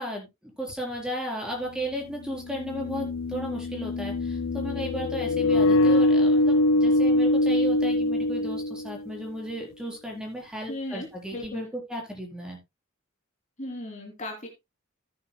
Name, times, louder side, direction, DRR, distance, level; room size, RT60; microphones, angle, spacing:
voice 1, 0.0-12.6, right 1 dB, 5° right, 0 dB, 4.2 m, -35 dB
sound 1, 0.7-0.8 2.3-9.1, left 1 dB, 80° left, 0.7 m, -23 dB
voice 2, 10.7-11.6 13.6-14.5, left 1 dB, 35° left, 2 dB, 2.9 m, -36 dB
14.5 x 9.4 x 2.2 m, 0.22 s
head